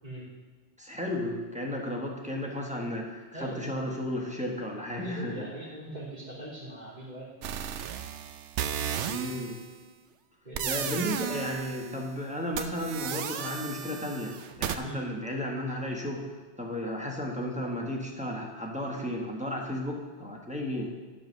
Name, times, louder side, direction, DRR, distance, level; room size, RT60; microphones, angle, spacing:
voice 1, 0.8-5.4 9.0-9.6 10.7-16.3 16.6-20.9, left 1 dB, 5° right, -2 dB, 1.3 m, -34 dB
voice 2, 3.3-3.8 4.9-7.5 9.1-9.3 10.4-11.0 14.8-15.0, right 1 dB, 40° right, -12 dB, 3.1 m, -41 dB
sound 1, 7.4-9.8 10.5-12.1 12.5-14.8, right 9 dB, 75° right, 0.9 m, -34 dB
10.5 x 5.0 x 6.7 m, 1.4 s
omnidirectional pair, 1.2 m